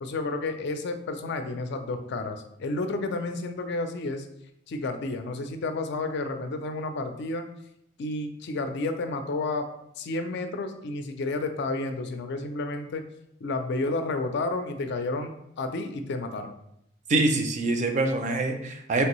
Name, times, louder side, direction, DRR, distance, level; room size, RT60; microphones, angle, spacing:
voice 1, 0.0-4.3 4.7-7.5 8.0-9.7 10.0-13.0 13.4-16.5, left 2 dB, 60° left, 7 dB, 0.4 m, -31 dB
voice 2, 17.1-19.1, right 2 dB, 40° right, 5 dB, 0.4 m, -25 dB
3.3 x 2.6 x 2.9 m, 0.77 s
head